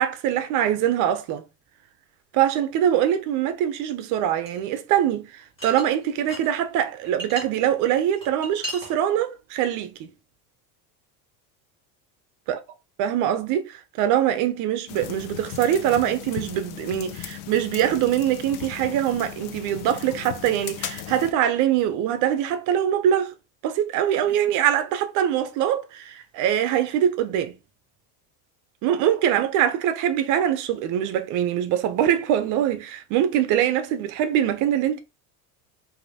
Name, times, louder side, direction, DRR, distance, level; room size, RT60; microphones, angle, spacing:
voice 1, 0.0-1.4 2.3-10.1 13.0-23.3 23.6-27.5 28.8-35.0, right 10 dB, 45° right, 0.5 m, -23 dB
sound 1, 4.5-4.6 5.6-6.5 6.8-7.4 8.0-8.9, right 1 dB, 10° left, 2.0 m, -35 dB
sound 2, 14.9-21.3, left 11 dB, 80° left, 0.7 m, -37 dB
5.2 x 2.6 x 2.7 m
cardioid pair, 165°, 45 cm